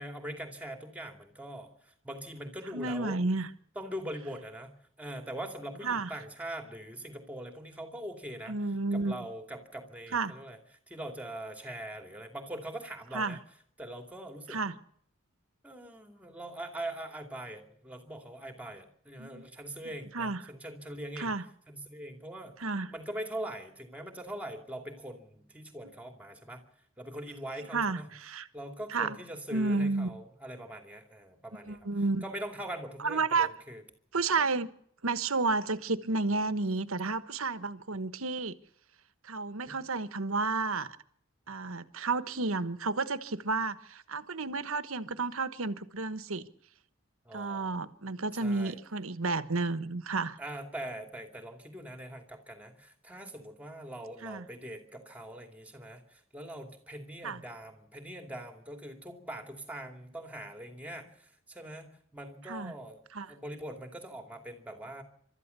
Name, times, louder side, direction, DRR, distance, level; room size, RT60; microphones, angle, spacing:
voice 1, 0.0-3.2 3.8-8.5 8.9-10.6 10.9-13.4 13.8-14.6 15.6-21.3 21.7-22.6 22.9-26.6 27.0-28.1 28.5-31.9 32.2-33.8 34.3-34.4 39.7-39.8 47.2-47.8 48.3-48.8 50.4-63.0 63.3-65.0, right 1 dB, 5° right, 6 dB, 2.5 m, -42 dB
voice 2, 2.7-3.5 5.8-6.1 8.5-9.2 10.1-10.3 13.1-13.4 14.5-14.7 19.2-19.5 20.0-20.4 21.2-21.4 22.6-22.9 25.8-25.9 27.7-28.5 28.9-29.2 29.5-30.1 31.7-32.2 33.0-33.5 34.1-34.7 35.0-38.5 39.2-40.9 41.5-46.5 47.3-50.4 54.2-54.5 57.2-57.4 62.5-62.7 63.1-63.3, right 3 dB, 80° right, 13 dB, 1.3 m, -31 dB
28.5 x 13.0 x 6.9 m, 0.67 s
head